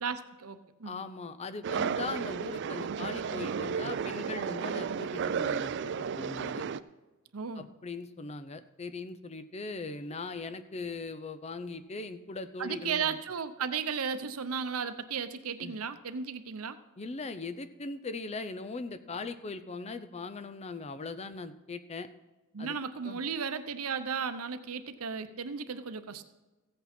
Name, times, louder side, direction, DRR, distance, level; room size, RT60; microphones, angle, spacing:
voice 1, 0.0-1.0 7.3-7.7 12.6-16.8 22.5-26.2, right 6 dB, 90° right, 11 dB, 0.7 m, -35 dB
voice 2, 0.8-6.6 7.6-13.2 15.6-15.8 17.0-22.1 22.6-22.8 23.0-23.2, left 3 dB, 30° left, 11 dB, 0.5 m, -40 dB
sound 1, 1.6-6.8, right 6 dB, 55° right, 0.4 m, -33 dB
15.0 x 8.3 x 4.3 m, 1.1 s
head